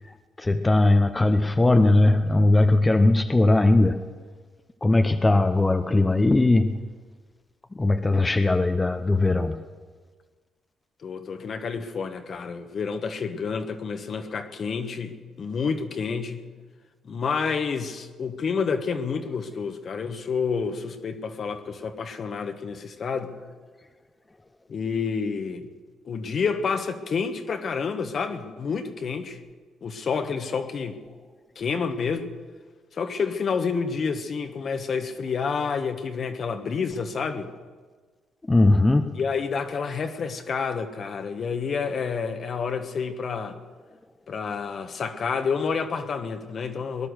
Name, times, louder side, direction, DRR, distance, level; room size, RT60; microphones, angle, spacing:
voice 1, 0.0-4.0 4.8-6.8 7.7-9.6 38.5-39.1, left 2 dB, 20° left, 7 dB, 0.8 m, -20 dB
voice 2, 11.0-16.4 17.0-23.3 24.7-25.7 26.0-29.4 29.8-31.0 31.5-32.3 32.9-37.5 39.1-43.6 44.3-47.1, left 5 dB, 50° left, 7 dB, 1.4 m, -29 dB
20.0 x 11.0 x 6.5 m, 1.5 s
cardioid pair, 90°, 0 cm